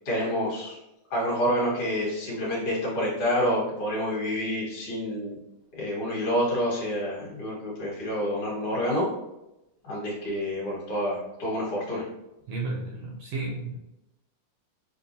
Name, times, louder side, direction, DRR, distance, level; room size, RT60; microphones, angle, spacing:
voice 1, 0.1-0.8 1.1-5.4 5.7-9.1 9.8-12.0, equal, 55° left, -6 dB, 2.3 m, -28 dB
voice 2, 12.5-13.8, right 3 dB, 75° right, -2 dB, 1.5 m, -32 dB
6.7 x 2.4 x 2.6 m, 0.90 s
omnidirectional pair, 3.3 m